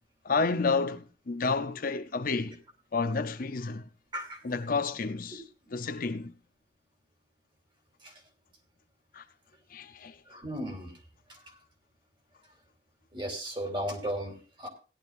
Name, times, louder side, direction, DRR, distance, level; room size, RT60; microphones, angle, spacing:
voice 1, 0.2-2.6 2.9-3.8 4.4-5.4 5.7-6.3 9.1-9.2 9.7-10.2, left 4 dB, 50° left, 0.6 m, -30 dB
voice 2, 4.1-4.4 8.0-8.1 10.3-10.9 11.3-11.4 13.1-14.7, equal, 25° right, 3.1 m, -35 dB
17.0 x 11.5 x 2.5 m
head